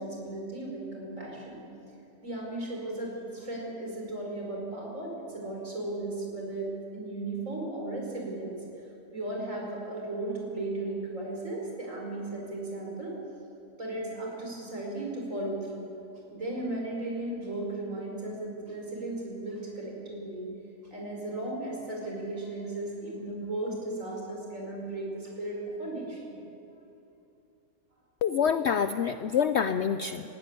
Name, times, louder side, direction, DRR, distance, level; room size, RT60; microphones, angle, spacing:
voice 1, 0.0-1.6 2.2-8.6 9.1-13.2 13.8-15.8 16.3-20.5 20.9-26.4, right 2 dB, 45° right, -2 dB, 5.5 m, -36 dB
voice 2, 28.2-30.2, left 7 dB, 80° left, 11 dB, 0.6 m, -26 dB
18.0 x 16.5 x 9.8 m, 2.7 s
omnidirectional pair, 1.8 m